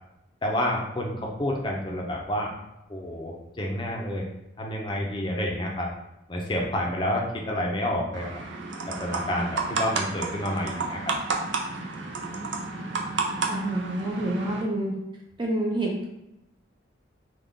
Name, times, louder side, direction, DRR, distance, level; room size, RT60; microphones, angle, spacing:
voice 1, 0.4-2.5 2.9-4.2 4.6-5.9 6.3-8.4 9.0-11.1, left 1 dB, 25° left, -1 dB, 0.6 m, -29 dB
sound 1, 8.1-14.6, right 4 dB, 75° right, 0.5 m, -31 dB
voice 2, 13.5-14.9 15.4-16.0, right 1 dB, 25° right, -2 dB, 0.5 m, -28 dB
3.7 x 2.3 x 3.5 m, 0.90 s
head